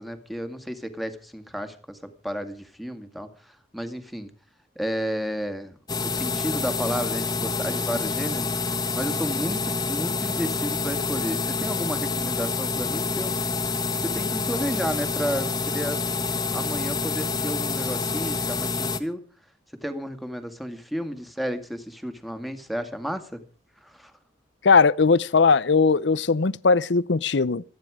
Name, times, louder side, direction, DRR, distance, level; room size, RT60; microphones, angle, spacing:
voice 1, 0.0-2.0 2.2-4.3 4.8-5.8 6.0-13.3 14.0-16.0 16.5-19.2 19.8-23.4 23.8-24.1, equal, ahead, 2.0 m, -32 dB
sound 1, 5.9-19.0, left 4 dB, 25° left, 1.5 m, -27 dB
voice 2, 24.6-27.6, left 4 dB, 75° left, 0.7 m, -19 dB
27.0 x 9.9 x 4.9 m
head